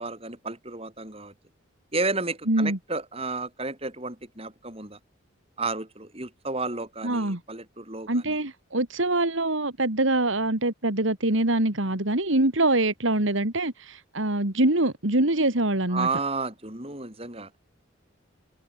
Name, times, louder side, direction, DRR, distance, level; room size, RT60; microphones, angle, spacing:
voice 1, 0.0-1.3 1.9-5.0 5.6-8.4 15.9-17.5, right 3 dB, 30° right, 7.2 m, -32 dB
voice 2, 2.5-2.8 7.0-7.4 8.1-16.1, right 2 dB, 75° right, 2.9 m, -24 dB
head